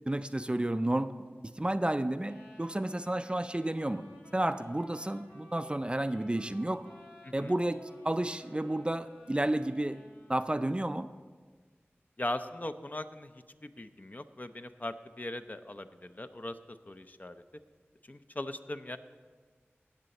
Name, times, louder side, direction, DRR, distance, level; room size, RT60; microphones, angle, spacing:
voice 1, 0.1-1.1 1.4-4.1 4.3-6.8 7.3-10.0 10.3-11.1, right 1 dB, 25° right, 11 dB, 0.4 m, -31 dB
sound 1, 2.2-10.6, left 1 dB, 85° left, 3.6 m, -54 dB
voice 2, 12.2-17.4 18.1-19.0, left 1 dB, 40° left, 9 dB, 0.5 m, -40 dB
17.5 x 6.7 x 4.2 m, 1.5 s
wide cardioid pair, 45°, 4 cm